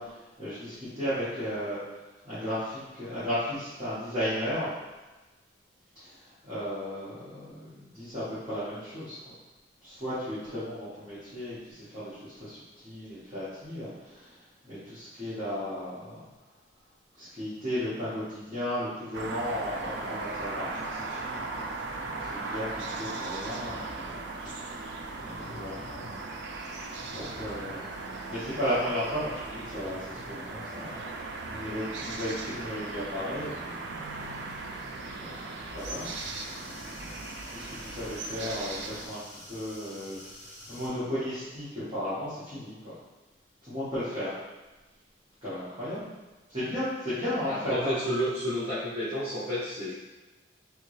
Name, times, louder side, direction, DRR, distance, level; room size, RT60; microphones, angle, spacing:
voice 1, 0.0-1.8 2.2-4.7 5.9-6.1 6.4-9.2 9.8-12.6 12.8-14.4 14.6-16.3 17.2-21.4 22.0-24.3 24.7-24.9 25.2-26.0 27.1-27.8 28.3-31.0 31.5-33.5 35.0-36.1 36.4-37.2 37.5-40.2 40.7-42.9 43.7-44.3 45.4-46.1 46.5-47.9, equal, 25° right, -15 dB, 1.4 m, -35 dB
sound 1, 19.1-39.1, right 3 dB, 65° right, 0.4 m, -38 dB
sound 2, 23.6-31.3, left 1 dB, 65° left, 0.8 m, -50 dB
sound 3, 35.8-40.9, left 1 dB, 40° left, 0.9 m, -48 dB
voice 2, 47.5-49.9, equal, 45° right, -11 dB, 0.9 m, -31 dB
3.5 x 2.9 x 3.2 m, 1.2 s
head